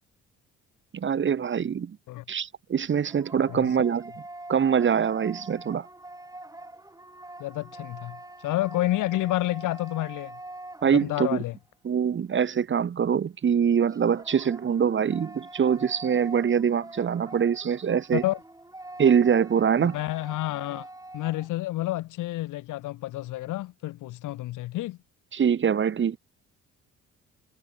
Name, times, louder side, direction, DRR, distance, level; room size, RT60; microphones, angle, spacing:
voice 1, 0.9-2.0 2.3-4.0 4.5-5.9 10.8-11.4 11.8-18.2 19.0-20.0 25.3-26.2, right 7 dB, 40° right, 1.1 m, -24 dB
sound 1, 2.8-11.5 13.8-21.5, right 2 dB, 10° right, 5.8 m, -44 dB
voice 2, 7.4-8.2 8.4-10.4 11.0-11.5 18.1-18.4 19.8-20.9 21.1-25.0, left 16 dB, 90° left, 2.1 m, -29 dB
cardioid pair, 90°, 30 cm